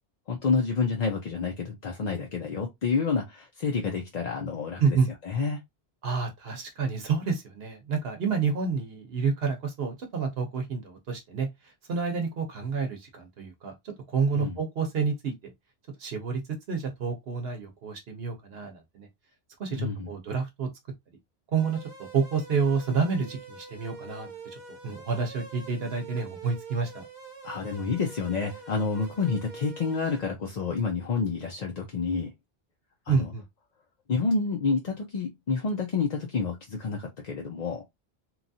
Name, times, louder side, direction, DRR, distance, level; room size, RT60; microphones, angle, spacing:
voice 1, 0.3-5.0 5.2-5.6 14.3-14.6 19.7-20.1 27.4-32.3 33.1-33.3 34.1-37.8, left 4 dB, 50° left, 0.6 m, -29 dB
voice 2, 6.0-13.7 14.1-15.3 16.0-16.4 16.7-19.1 19.6-20.7 21.5-27.0 33.1-33.4, right 5 dB, 70° right, 1.0 m, -29 dB
sound 1, 21.6-30.2, right 3 dB, 50° right, 0.9 m, -45 dB
2.9 x 2.3 x 2.6 m
omnidirectional pair, 1.1 m